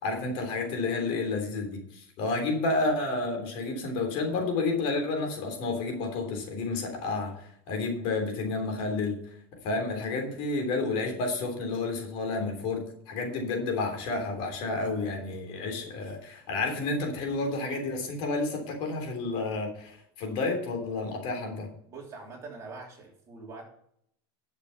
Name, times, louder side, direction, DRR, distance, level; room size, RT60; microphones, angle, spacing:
voice 1, 0.0-9.2 9.6-21.7, left 3 dB, 50° left, 3 dB, 3.4 m, -30 dB
voice 2, 21.9-23.6, right 3 dB, 25° right, -1 dB, 3.3 m, -43 dB
11.5 x 6.7 x 5.7 m, 0.69 s
supercardioid pair, 160°, 12 cm